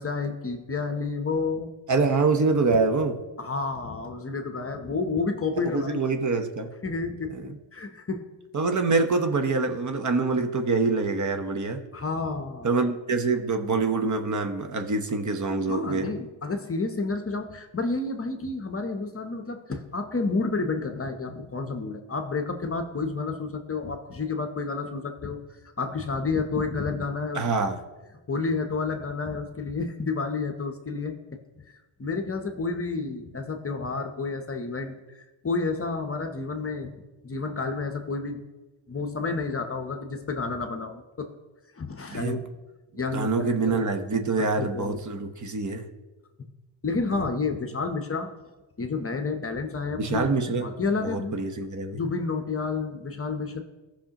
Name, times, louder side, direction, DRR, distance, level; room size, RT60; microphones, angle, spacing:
voice 1, 0.0-1.7 2.7-2.8 3.4-6.0 6.8-7.3 7.7-8.3 11.9-12.7 15.7-25.4 25.8-27.4 28.3-31.4 32.0-36.9 37.2-38.4 38.9-41.3 41.8-42.4 42.9-43.8 44.4-45.0 46.4-46.5 46.8-48.3 48.8-51.4 51.9-53.6, left 4 dB, 30° left, 6 dB, 0.8 m, -30 dB
voice 2, 1.9-3.2 5.6-6.7 7.3-7.5 8.5-11.8 12.6-16.1 27.3-27.8 42.1-42.4 43.1-45.8 50.0-50.7 51.0-52.0, right 4 dB, 35° right, 6 dB, 0.9 m, -25 dB
14.5 x 5.8 x 2.9 m, 1.2 s
cardioid pair, 90°, 49 cm